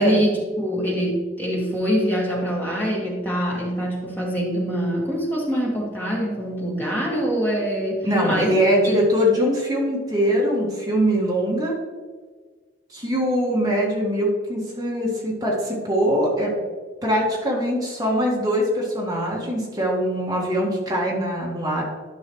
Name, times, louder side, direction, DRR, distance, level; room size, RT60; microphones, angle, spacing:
voice 1, 0.0-8.5 8.8-9.0, equal, 10° left, -4 dB, 1.9 m, -24 dB
voice 2, 8.0-11.8 12.9-16.5 17.0-21.8, equal, 20° right, -4 dB, 1.9 m, -22 dB
11.5 x 5.5 x 3.1 m, 1.5 s
head